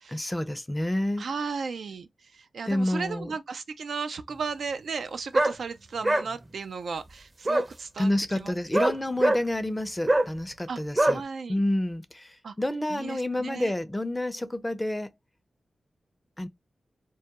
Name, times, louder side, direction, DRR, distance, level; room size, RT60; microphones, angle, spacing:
voice 1, 0.1-1.3 2.7-3.3 8.0-11.2 11.5-15.1 16.4-16.5, left 1 dB, 20° left, 0.5 m, -29 dB
voice 2, 1.2-8.1 8.4-8.5 10.7-10.8 11.1-11.6 12.4-12.5 12.9-13.7, right 5 dB, 75° right, 0.4 m, -35 dB
sound 1, 5.3-5.5 6.0-6.3 7.5-7.7 8.7-9.4 10.1-10.3 11.0-11.2, right 1 dB, 35° right, 0.6 m, -22 dB
2.3 x 2.1 x 2.8 m
cardioid pair, 40°, 0 cm